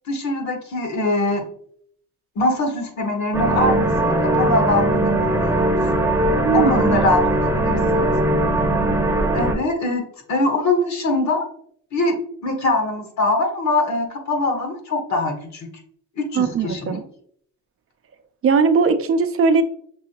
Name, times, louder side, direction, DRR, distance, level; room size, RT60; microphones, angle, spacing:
voice 1, 0.1-1.4 2.4-5.6 6.5-8.1 9.3-10.0 10.3-11.5 11.9-12.2 12.4-15.7 16.2-17.0, left 2 dB, 65° left, 3 dB, 1.3 m, -23 dB
sound 1, 3.3-9.6, right 1 dB, 10° right, 0.7 m, -19 dB
voice 2, 6.4-7.0 16.3-17.0 18.4-19.6, right 5 dB, 50° right, 9 dB, 0.5 m, -19 dB
6.1 x 2.8 x 2.8 m, 0.62 s
cardioid pair, 90°, 30 cm